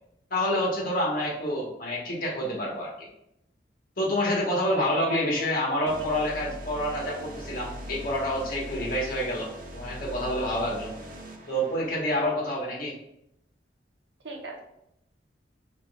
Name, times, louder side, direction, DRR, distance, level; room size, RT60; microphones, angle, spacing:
voice 1, 0.3-3.1 4.0-10.9 11.5-13.0, equal, 55° left, -3 dB, 1.3 m, -28 dB
voice 2, 4.7-5.5 6.0-6.1 14.2-14.6, right 2 dB, 80° right, 0 dB, 0.8 m, -36 dB
sound 1, 5.9-12.3, equal, 50° right, 0.6 m, -41 dB
5.1 x 3.1 x 2.3 m, 0.80 s
head